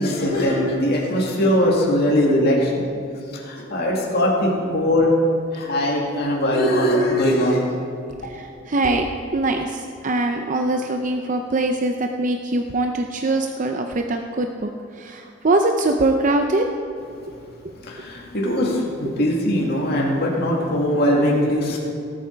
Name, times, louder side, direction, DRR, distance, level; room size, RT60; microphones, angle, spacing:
voice 1, 0.0-3.0 3.3-5.1 5.5-7.6 17.8-21.8, left 1 dB, 55° left, -3 dB, 2.3 m, -20 dB
voice 2, 8.3-9.1 9.3-14.7 15.0-16.6, right 2 dB, 40° right, 4 dB, 0.6 m, -22 dB
18.0 x 8.4 x 4.6 m, 2.7 s
head